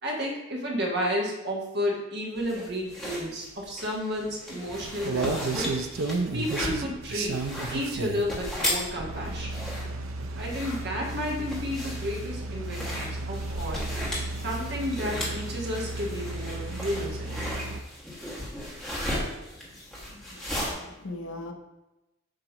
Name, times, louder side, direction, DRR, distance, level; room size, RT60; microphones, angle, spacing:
voice 1, 0.0-5.8 6.3-7.4 7.7-9.5 10.4-13.9 14.4-17.5, equal, 55° right, -1 dB, 1.3 m, -32 dB
sound 1, 2.4-20.7, left 1 dB, 5° left, 1.4 m, -36 dB
sound 2, 4.7-17.8, right 3 dB, 80° right, 0.5 m, -34 dB
voice 2, 20.1-21.5, left 2 dB, 75° left, 4 dB, 0.8 m, -40 dB
7.5 x 3.0 x 5.0 m, 0.98 s
head